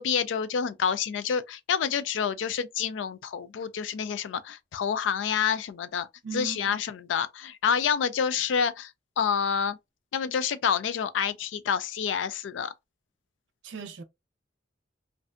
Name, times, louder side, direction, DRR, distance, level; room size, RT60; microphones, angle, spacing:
voice 1, 0.0-6.1 6.3-8.9 9.2-9.8 10.1-12.7, left 7 dB, 85° left, 0.4 m, -28 dB
voice 2, 6.2-6.8 13.6-14.0, right 6 dB, 85° right, 0.5 m, -38 dB
2.6 x 2.1 x 2.4 m
head